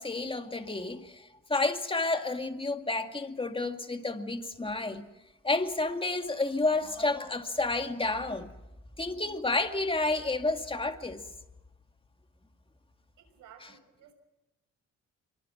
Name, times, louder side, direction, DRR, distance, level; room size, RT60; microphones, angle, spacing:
voice 1, 0.0-5.1 5.4-8.5 9.0-11.3, left 2 dB, 15° left, 2.2 m, -30 dB
voice 2, 13.2-14.1, right 8 dB, 85° right, 6.7 m, -55 dB
25.5 x 23.0 x 6.1 m
cardioid pair, 90°, 30 cm